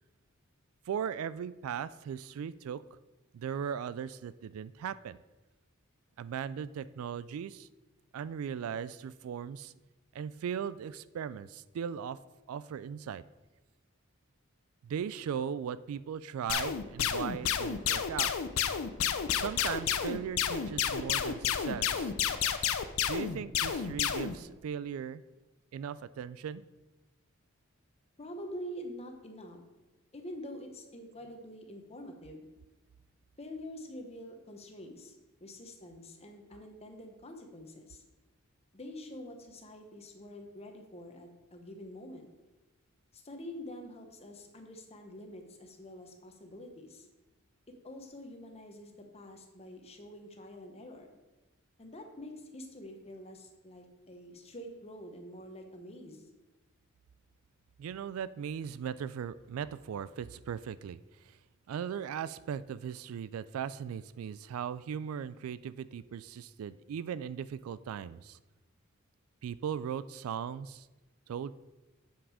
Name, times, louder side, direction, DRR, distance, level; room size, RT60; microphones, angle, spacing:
voice 1, 0.9-2.8 3.3-5.2 6.2-7.7 8.1-9.7 10.1-12.2 12.5-13.2 14.8-18.3 19.3-22.1 23.1-25.2 25.7-26.6 57.8-61.4 61.7-68.4 69.4-70.9 71.3-71.5, right 8 dB, 75° right, 17 dB, 0.3 m, -38 dB
sound 1, 16.5-24.4, left 8 dB, 75° left, 0.5 m, -30 dB
voice 2, 28.2-29.6 30.1-32.5 33.4-38.0 38.7-42.3 43.1-47.1 47.8-51.1 51.8-56.3, left 1 dB, 30° left, 4 dB, 1.0 m, -46 dB
7.3 x 6.0 x 4.9 m, 1.1 s
head